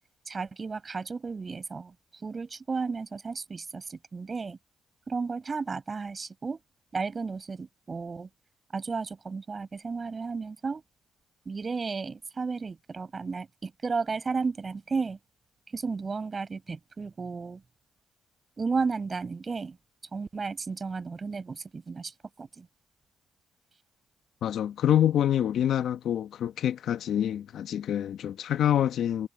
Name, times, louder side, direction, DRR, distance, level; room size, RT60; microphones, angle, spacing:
voice 1, 0.3-1.9 2.2-4.6 5.1-6.6 6.9-8.3 8.7-10.8 11.5-15.2 15.7-17.6 18.6-19.8 20.1-22.1 22.4-22.7, right 4 dB, 35° right, 5.9 m, -33 dB
voice 2, 24.4-29.3, left 10 dB, 70° left, 1.0 m, -26 dB
cardioid pair, 90°, 0 cm